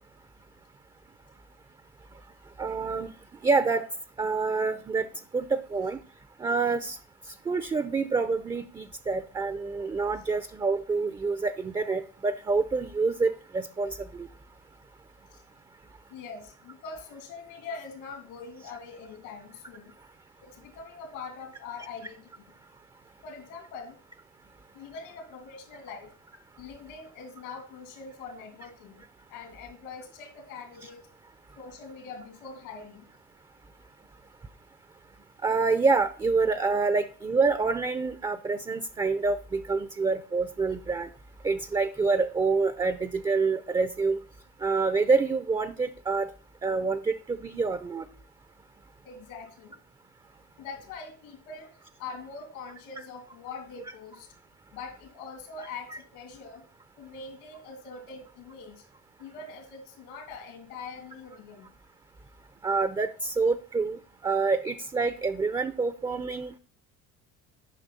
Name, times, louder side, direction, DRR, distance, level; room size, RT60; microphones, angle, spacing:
voice 1, 2.6-3.1 3.4-3.9 4.2-5.1 5.3-6.0 6.4-7.0 7.5-14.3 35.4-41.1 41.4-44.2 44.6-46.3 46.6-48.0 62.6-66.6, right 4 dB, 15° right, 12 dB, 0.4 m, -27 dB
voice 2, 16.1-19.9 20.4-22.4 23.2-24.0 24.7-26.1 26.6-31.1 31.6-33.1 49.0-49.8 50.6-54.3 54.7-56.6 57.0-58.8 59.2-61.7, left 4 dB, 85° left, 5 dB, 2.8 m, -43 dB
9.0 x 5.5 x 4.1 m, 0.42 s
cardioid pair, 115°, 34 cm